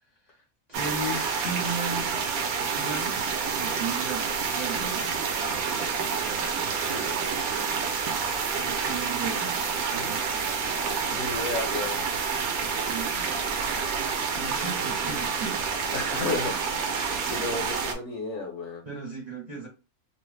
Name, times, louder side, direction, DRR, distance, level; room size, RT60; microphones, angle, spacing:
voice 1, 0.7-2.1 2.7-3.2 3.5-5.2 8.6-9.6 9.9-10.3 12.8-13.3 14.4-15.6 18.8-19.7, right 3 dB, 40° right, -3 dB, 0.6 m, -36 dB
sound 1, 0.7-17.9, right 5 dB, 80° right, 1.0 m, -28 dB
voice 2, 11.1-12.0 15.9-16.8 17.3-18.9, left 3 dB, 60° left, 2 dB, 0.9 m, -32 dB
2.7 x 2.0 x 3.1 m, 0.30 s
omnidirectional pair, 1.5 m